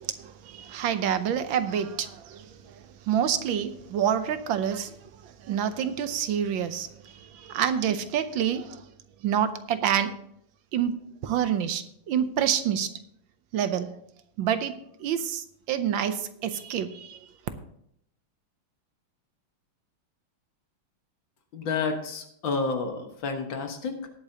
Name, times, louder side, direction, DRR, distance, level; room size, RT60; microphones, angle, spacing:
voice 1, 0.0-4.9 5.2-8.8 9.2-10.1 10.7-10.9 11.2-12.9 13.5-13.9 14.4-14.7 15.0-17.2, right 9 dB, 75° right, 1.5 m, -28 dB
voice 2, 21.5-24.1, left 4 dB, 70° left, 2.1 m, -30 dB
18.5 x 8.2 x 2.8 m
omnidirectional pair, 2.2 m